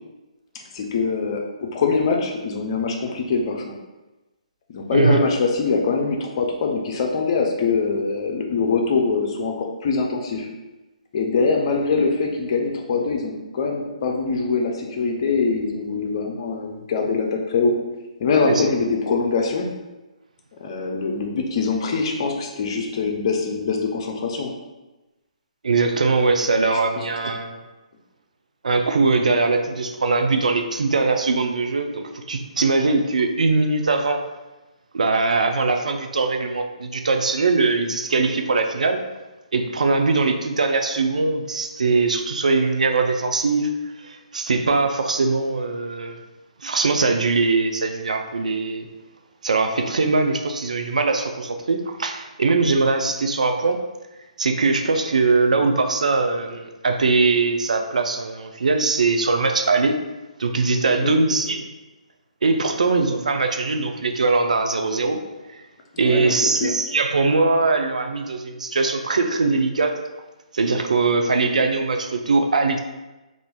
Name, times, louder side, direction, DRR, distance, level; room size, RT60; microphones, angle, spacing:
voice 1, 0.7-3.7 4.7-10.5 11.1-17.7 18.2-19.7 20.6-24.5 26.7-26.8 61.0-61.2 66.0-66.7, left 4 dB, 45° left, 1 dB, 0.6 m, -23 dB
voice 2, 25.6-27.6 28.6-34.2 34.9-39.0 39.5-43.7 44.0-46.2 46.6-48.9 49.4-53.8 54.4-59.9 60.4-61.7 62.4-65.2 65.5-65.6 66.0-70.0 70.5-72.8, right 3 dB, 75° right, 6 dB, 0.4 m, -21 dB
2.9 x 2.5 x 3.5 m, 1.1 s
figure-of-eight pair, 135°, 4 cm